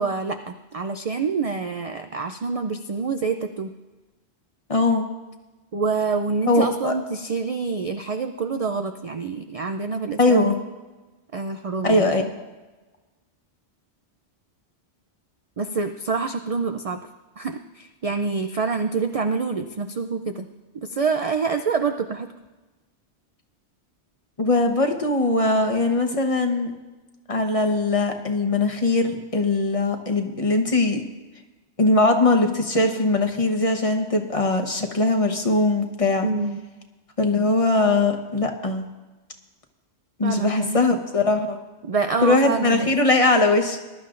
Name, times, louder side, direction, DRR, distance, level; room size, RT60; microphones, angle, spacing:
voice 1, 0.0-3.7 5.7-10.5 11.3-12.3 15.6-17.0 17.4-20.4 20.9-22.3 36.2-36.6 40.2-40.8 41.9-42.9, right 4 dB, 50° right, 6 dB, 0.4 m, -26 dB
voice 2, 4.7-5.1 6.5-6.9 10.2-10.6 11.8-12.2 24.4-26.7 27.3-31.0 31.8-36.3 37.2-38.8 40.2-41.6 42.2-43.8, left 2 dB, 30° left, 4 dB, 1.1 m, -21 dB
21.0 x 12.0 x 2.5 m, 1.2 s
omnidirectional pair, 1.1 m